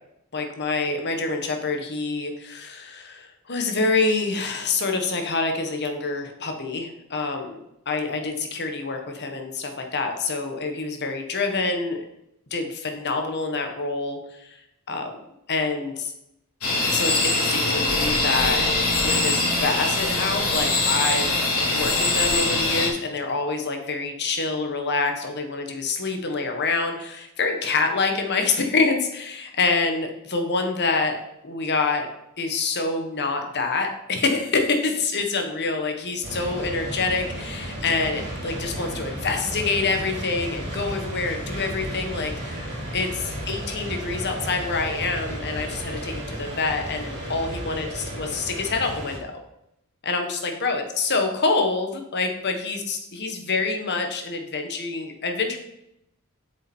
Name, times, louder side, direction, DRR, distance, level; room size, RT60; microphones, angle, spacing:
voice 1, 0.3-7.6 7.8-12.0 12.5-14.6 14.9-15.1 15.5-16.1 16.9-18.7 19.0-31.2 31.4-32.1 32.4-43.1 43.5-49.3 50.0-55.6, left 3 dB, 50° left, 4 dB, 1.5 m, -26 dB
sound 1, 16.6-22.9, left 2 dB, 85° left, 2.8 m, -22 dB
sound 2, 36.2-49.2, right 1 dB, 50° right, 3.3 m, -33 dB
8.4 x 6.8 x 4.6 m, 0.81 s
head